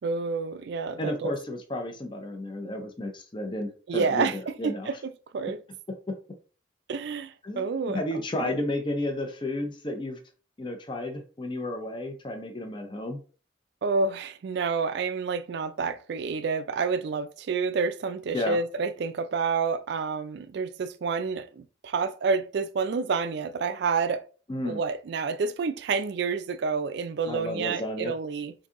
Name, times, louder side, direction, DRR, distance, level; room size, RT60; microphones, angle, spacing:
voice 1, 0.0-1.3 3.9-5.6 6.9-8.5 13.8-24.2 24.6-28.5, right 5 dB, 60° right, 0.3 m, -29 dB
voice 2, 1.0-5.0 6.1-6.2 7.4-7.7 7.9-10.2 10.6-13.2 18.3-18.6 24.5-24.8 27.3-28.1, left 1 dB, 25° left, 0.5 m, -32 dB
3.8 x 2.7 x 3.6 m
head